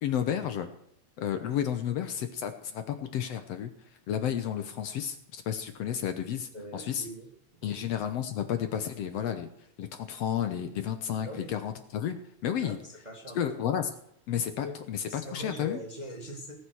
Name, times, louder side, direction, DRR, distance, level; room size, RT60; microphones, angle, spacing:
voice 1, 0.0-0.7 1.2-3.7 4.1-7.1 7.6-9.5 9.8-12.2 12.4-12.8 13.4-13.9 14.3-15.8, left 9 dB, 65° left, 8 dB, 1.9 m, -32 dB
voice 2, 6.5-7.3 7.6-7.8 11.2-11.5 12.6-13.4 14.6-14.7 15.1-16.6, left 1 dB, 20° right, 2 dB, 1.5 m, -41 dB
18.0 x 8.0 x 6.3 m, 0.74 s
omnidirectional pair, 3.3 m